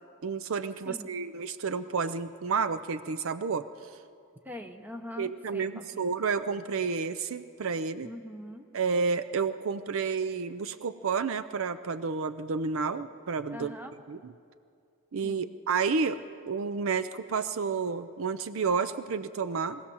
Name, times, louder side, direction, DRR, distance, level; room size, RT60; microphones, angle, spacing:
voice 1, 0.2-3.7 5.2-8.1 8.7-13.8 14.1-14.3 15.1-19.8, right 5 dB, 60° right, 11 dB, 0.5 m, -30 dB
voice 2, 4.4-6.0 8.0-8.7 13.5-14.0 15.2-15.5, left 1 dB, 10° right, 5 dB, 1.1 m, -43 dB
22.0 x 16.5 x 7.1 m, 2.4 s
head